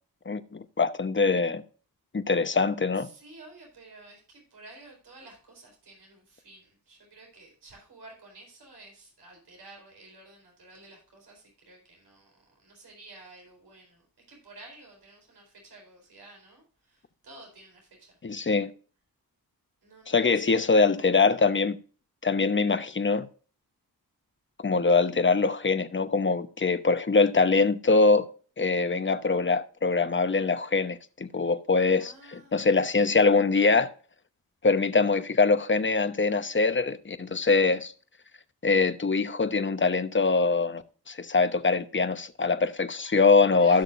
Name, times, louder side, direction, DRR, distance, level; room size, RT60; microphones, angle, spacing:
voice 1, 0.3-1.6 2.1-3.1 18.2-18.7 20.1-21.8 22.2-23.3 24.6-28.3 28.6-33.9 34.6-37.9 38.6-43.8, left 4 dB, 30° left, 0.9 m, -23 dB
voice 2, 3.0-18.1 19.8-21.2 32.0-33.0 43.4-43.8, right 2 dB, 90° right, 4.3 m, -52 dB
15.5 x 6.4 x 2.6 m
cardioid pair, 50°, 38 cm